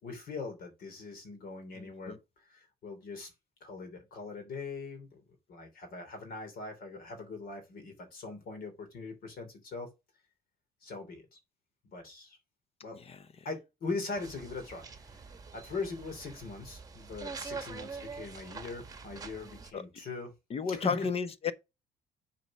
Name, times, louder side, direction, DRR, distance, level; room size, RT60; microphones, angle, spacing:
voice 1, 0.0-3.3 3.6-5.2 5.5-9.9 10.8-11.3 11.8-12.4 12.8-13.0 13.4-20.3 20.7-21.1, left 3 dB, 60° left, 2.9 m, -41 dB
sound 1, 14.1-19.7, right 4 dB, 20° right, 1.1 m, -45 dB
voice 2, 20.5-21.5, left 6 dB, 35° left, 0.8 m, -32 dB
7.7 x 4.3 x 5.9 m
cardioid pair, 110°, 17 cm